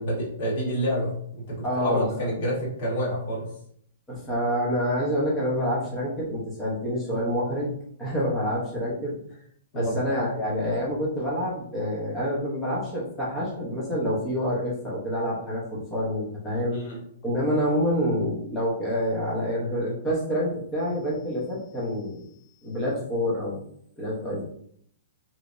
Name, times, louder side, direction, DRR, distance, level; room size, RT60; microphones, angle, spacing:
voice 1, 0.0-3.5 9.7-10.0 16.7-17.0, equal, 35° left, -4 dB, 1.3 m, -28 dB
voice 2, 1.6-2.1 4.1-7.7 8.0-9.2 9.7-16.8 17.2-22.3 22.6-23.7 24.0-24.4, equal, 10° left, -5 dB, 0.8 m, -27 dB
3.2 x 3.0 x 2.5 m, 0.66 s
hypercardioid pair, 180°, 0 cm